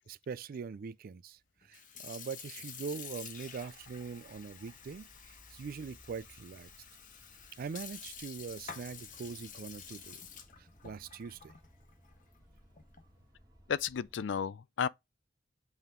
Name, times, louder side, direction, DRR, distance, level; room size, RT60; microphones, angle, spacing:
voice 1, 0.1-1.4 1.7-6.7 7.6-10.2 10.8-11.5, right 5 dB, 50° right, 0.4 m, -42 dB
Sink (filling or washing) / Fill (with liquid), 1.6-13.2, left 7 dB, 45° left, 1.1 m, -49 dB
sound 1, 2.8-14.3, equal, 20° right, 2.1 m, -62 dB
voice 2, 13.7-14.9, left 7 dB, 75° left, 0.4 m, -33 dB
8.2 x 3.6 x 3.6 m
head